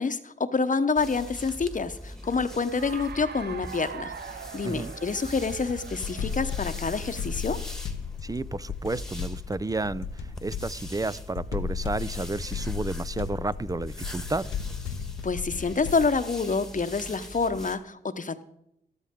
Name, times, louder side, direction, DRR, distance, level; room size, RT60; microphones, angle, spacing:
voice 1, 0.0-4.1 4.5-7.6 15.2-18.4, left 4 dB, 40° left, 11 dB, 0.9 m, -27 dB
sound 1, 1.0-17.8, left 1 dB, 5° left, 1.5 m, -43 dB
Cheering / Applause, 2.6-7.8, right 6 dB, 60° right, 0.8 m, -42 dB
sound 2, 5.5-16.2, left 7 dB, 85° left, 0.7 m, -35 dB
voice 2, 8.2-14.5, right 3 dB, 20° right, 19 dB, 0.4 m, -31 dB
13.0 x 12.5 x 3.7 m, 0.78 s
supercardioid pair, 45°, 20 cm